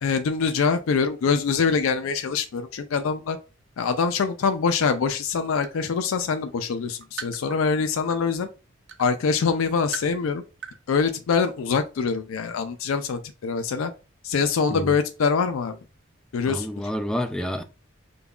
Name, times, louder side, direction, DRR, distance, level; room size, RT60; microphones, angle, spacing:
voice 1, 0.0-3.4 3.8-8.5 9.0-10.4 10.9-13.9 14.2-15.8 16.3-16.7, left 5 dB, 80° left, 0.4 m, -24 dB
sound 1, 4.5-4.7 5.1-5.9 6.3-8.4 8.9-9.0 9.6-10.2 10.6-10.8 11.0-11.1, right 6 dB, 60° right, 0.5 m, -38 dB
voice 2, 16.5-17.6, equal, 5° left, 0.3 m, -28 dB
5.2 x 2.3 x 2.3 m
head